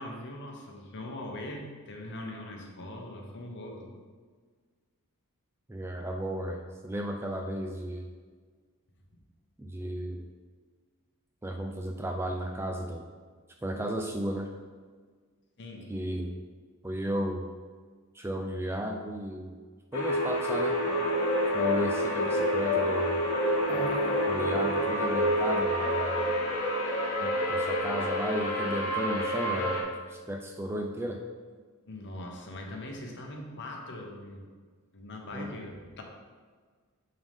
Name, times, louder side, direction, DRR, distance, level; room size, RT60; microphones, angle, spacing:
voice 1, 0.0-3.9 9.1-9.2 15.6-15.9 17.0-17.1 31.9-34.4 34.9-36.0, left 1 dB, 55° left, 1 dB, 1.0 m, -41 dB
voice 2, 5.7-8.1 9.6-10.3 11.4-13.0 13.6-14.5 15.9-16.3 16.8-17.5 18.1-19.5 19.9-20.8 21.5-23.2 24.3-26.4 27.2-31.2 35.3-35.5, equal, 10° right, 2 dB, 0.3 m, -34 dB
sound 1, 19.9-29.8, equal, 85° left, 1.1 m, -29 dB
sound 2, 20.8-27.8, left 1 dB, 35° left, 0.7 m, -32 dB
8.0 x 3.9 x 3.6 m, 1.5 s
head